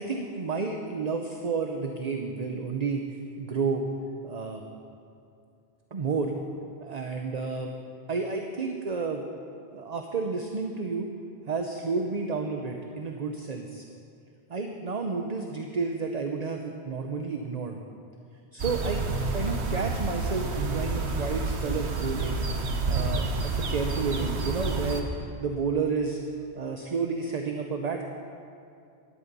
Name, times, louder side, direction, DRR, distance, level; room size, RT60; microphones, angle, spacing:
voice 1, 0.0-3.0 3.4-3.9 4.2-4.6 5.9-6.3 6.8-7.7 8.1-9.2 9.7-11.1 11.5-13.8 14.5-17.8 18.5-19.0 19.3-22.5 22.9-26.2 26.5-28.0, right 4 dB, 40° right, 3 dB, 0.9 m, -31 dB
sound 1, 18.6-25.0, right 3 dB, 85° right, 1.4 m, -29 dB
16.5 x 11.5 x 5.4 m, 2.4 s
omnidirectional pair, 1.1 m